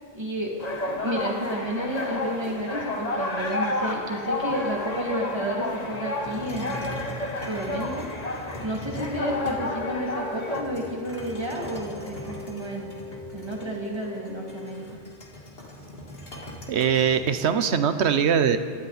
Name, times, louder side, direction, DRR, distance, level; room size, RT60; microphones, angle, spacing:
voice 1, 0.1-7.0 7.4-8.1 8.6-12.9 13.3-14.8, equal, 25° right, -1 dB, 2.3 m, -31 dB
sound 1, 0.6-10.6, left 2 dB, 40° left, 1.3 m, -31 dB
sound 2, 6.2-9.9 10.5-17.2, equal, 60° left, 2.4 m, -40 dB
Wind instrument woodwind instrument, 9.2-14.9, left 4 dB, 5° left, 3.4 m, -41 dB
voice 2, 16.7-18.6, right 7 dB, 80° right, 10 dB, 1.1 m, -22 dB
25.5 x 12.5 x 4.1 m, 2.1 s
omnidirectional pair, 1.1 m